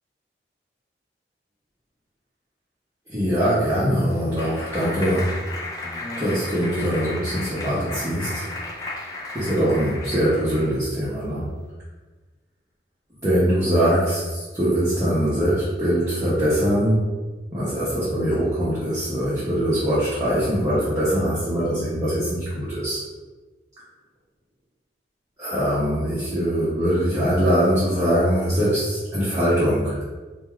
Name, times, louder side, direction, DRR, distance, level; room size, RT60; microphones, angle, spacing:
voice 1, 3.1-5.4 6.2-8.5 9.3-11.5 13.2-17.1 17.5-23.0 25.4-30.0, equal, 15° right, -11 dB, 0.9 m, -22 dB
Clapping, 3.5-10.8, left 2 dB, 20° left, 0.4 m, -34 dB
3.9 x 2.3 x 4.5 m, 1.3 s
head